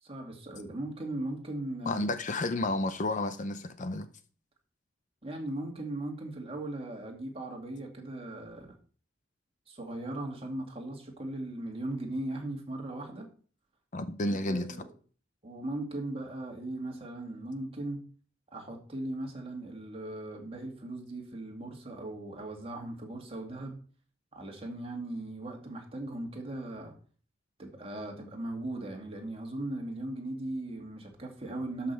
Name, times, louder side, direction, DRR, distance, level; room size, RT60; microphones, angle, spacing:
voice 1, 0.0-2.0 5.2-8.7 9.7-13.3 14.2-14.9 15.4-18.0 18.5-23.8 24.3-27.0 27.6-31.9, right 1 dB, 30° right, 2.2 m, -38 dB
voice 2, 1.9-4.1 13.9-14.7, left 2 dB, 40° left, 0.7 m, -31 dB
12.5 x 5.8 x 4.6 m
head